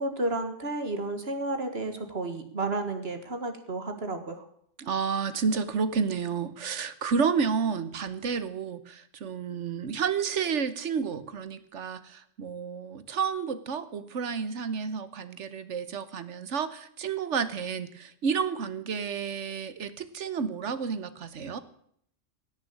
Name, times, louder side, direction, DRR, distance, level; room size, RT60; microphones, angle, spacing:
voice 1, 0.0-4.5, right 2 dB, 55° right, 7 dB, 2.0 m, -32 dB
voice 2, 4.8-21.6, right 6 dB, 75° right, 13 dB, 1.4 m, -30 dB
16.5 x 6.8 x 8.6 m, 0.67 s
omnidirectional pair, 1.2 m